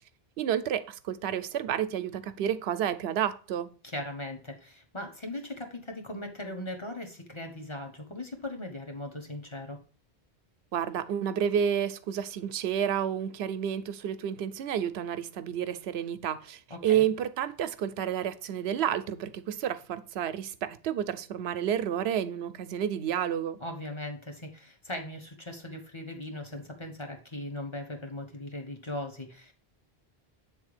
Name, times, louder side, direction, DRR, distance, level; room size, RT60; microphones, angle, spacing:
voice 1, 0.4-3.7 10.7-23.6, right 9 dB, 85° right, 0.9 m, -30 dB
voice 2, 3.8-9.8 16.7-17.1 23.6-29.5, left 1 dB, 30° left, 1.3 m, -39 dB
8.0 x 3.6 x 4.8 m
omnidirectional pair, 1.0 m